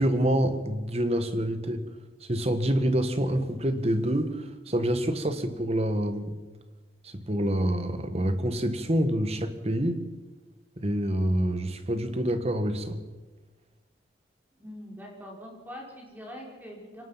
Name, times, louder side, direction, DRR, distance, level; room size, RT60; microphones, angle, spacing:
voice 1, 0.0-6.4 7.0-10.1 10.8-13.0, right 1 dB, 35° right, 1.6 m, -27 dB
voice 2, 14.6-17.0, equal, 10° right, 5.0 m, -43 dB
24.0 x 18.5 x 5.8 m
head